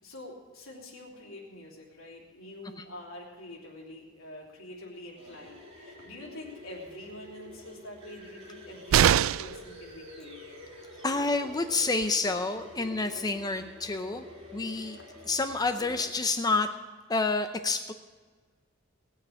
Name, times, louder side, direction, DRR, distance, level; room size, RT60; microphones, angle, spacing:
voice 1, 0.0-10.6, left 1 dB, 90° left, -2 dB, 3.2 m, -46 dB
sound 1, 5.2-16.1, left 1 dB, 30° right, 3.4 m, -48 dB
sound 2, 8.9-9.7 11.6-11.7 12.0-12.1, right 10 dB, 75° right, 0.3 m, -22 dB
voice 2, 11.0-14.3 14.5-16.7 17.1-17.9, left 3 dB, 20° left, 8 dB, 0.6 m, -29 dB
19.5 x 6.6 x 8.6 m, 1.5 s
head